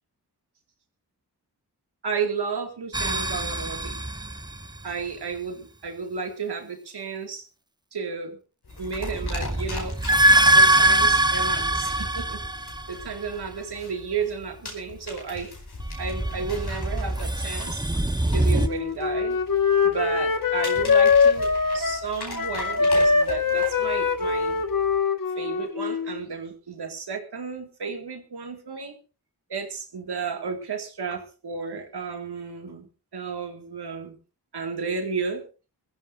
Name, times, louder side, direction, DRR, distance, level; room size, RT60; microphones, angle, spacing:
voice 1, 2.0-4.0 4.8-7.4 7.9-8.4 8.8-9.9 10.5-12.4 12.9-15.5 16.0-17.8 18.3-19.4 19.8-24.6 25.4-29.0 29.5-34.2 34.5-35.4, right 5 dB, 90° right, 4 dB, 2.4 m, -32 dB
sound 1, 2.9-4.9 8.8-13.3 15.8-18.7, right 1 dB, 10° right, 1.1 m, -23 dB
sound 2, 8.6-25.0, left 3 dB, 80° left, 4.9 m, -41 dB
Wind instrument woodwind instrument, 18.5-26.2, left 5 dB, 60° left, 1.7 m, -22 dB
22.5 x 14.5 x 2.7 m, 0.33 s
cardioid pair, 50°, 39 cm